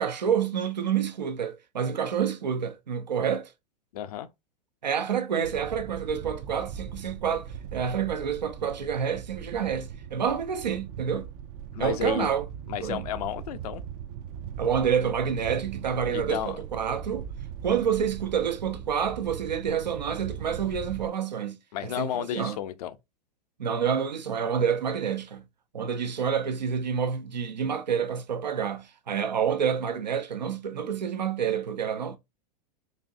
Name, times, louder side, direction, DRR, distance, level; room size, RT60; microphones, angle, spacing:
voice 1, 0.0-3.5 4.8-11.3 11.8-12.4 12.8-13.0 14.6-17.3 17.6-21.6 21.8-22.6 23.6-25.4 25.7-32.2, right 7 dB, 90° right, 0.7 m, -28 dB
voice 2, 3.9-4.3 11.7-12.3 12.7-13.8 16.1-16.6 21.7-23.0, left 11 dB, 65° left, 0.6 m, -32 dB
sound 1, 5.4-21.1, right 8 dB, 45° right, 0.4 m, -40 dB
4.3 x 2.6 x 2.5 m
hypercardioid pair, 100°, 21 cm